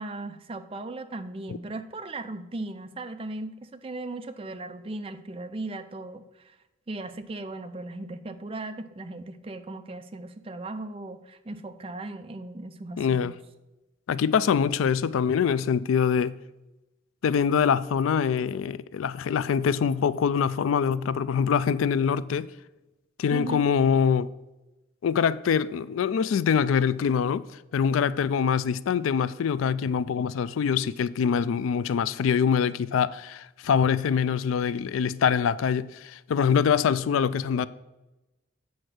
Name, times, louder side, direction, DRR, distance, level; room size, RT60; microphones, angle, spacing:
voice 1, 0.0-6.6 6.9-13.3 23.3-23.7, right 2 dB, 30° right, 0.5 m, -37 dB
voice 2, 13.0-13.3 14.1-16.4 17.2-22.5 23.2-24.3 25.0-27.4 27.7-37.7, left 7 dB, 90° left, 0.3 m, -24 dB
7.9 x 4.4 x 6.5 m
head